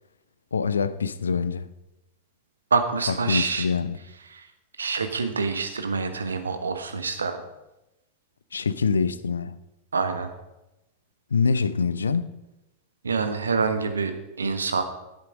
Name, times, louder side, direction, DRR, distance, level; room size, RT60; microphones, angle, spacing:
voice 1, 0.5-1.7 3.1-4.0 8.5-9.6 11.3-12.3, left 5 dB, 70° left, 0.5 m, -25 dB
voice 2, 2.7-3.7 4.3-4.4 4.8-7.4 9.9-10.3 13.0-14.1 14.4-14.8, right 4 dB, 75° right, 1.1 m, -26 dB
11.0 x 8.2 x 5.0 m
figure-of-eight pair, 90°, 0 cm